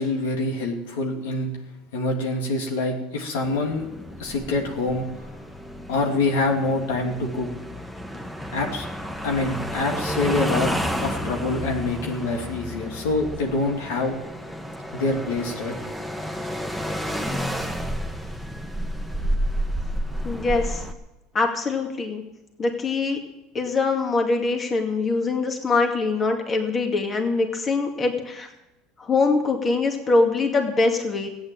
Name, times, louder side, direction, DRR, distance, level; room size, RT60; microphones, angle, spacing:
voice 1, 0.0-1.5 1.9-3.8 4.2-5.1 5.9-7.5 8.5-8.9 9.2-10.7 11.0-14.2 14.9-15.7, left 2 dB, 85° left, 1 dB, 2.9 m, -25 dB
sound 1, 3.4-20.9, equal, 5° left, 1.6 m, -31 dB
voice 2, 20.2-20.8 21.3-22.2 22.6-23.2 23.5-28.5 29.0-31.3, left 3 dB, 30° left, 3 dB, 2.4 m, -23 dB
14.5 x 9.3 x 8.9 m, 0.96 s
supercardioid pair, 100°, 0 cm